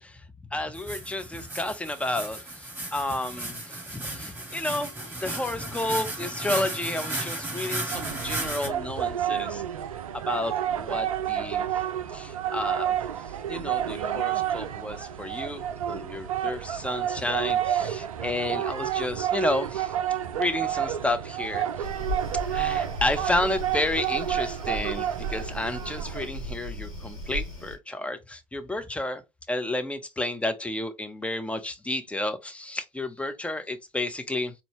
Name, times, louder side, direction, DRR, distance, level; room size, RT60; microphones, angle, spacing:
voice 1, 0.5-4.9 5.2-9.6 10.1-11.7 12.1-13.0 13.2-20.0 20.3-21.9 22.5-29.2 29.5-34.5, left 2 dB, 5° left, 0.7 m, -31 dB
sound 1, 0.7-8.7, right 2 dB, 10° right, 2.1 m, -34 dB
sound 2, 7.9-26.3, right 10 dB, 85° right, 0.4 m, -30 dB
sound 3, 21.8-27.8, right 1 dB, 90° left, 1.6 m, -36 dB
4.1 x 2.8 x 3.1 m
figure-of-eight pair, 65°, 17 cm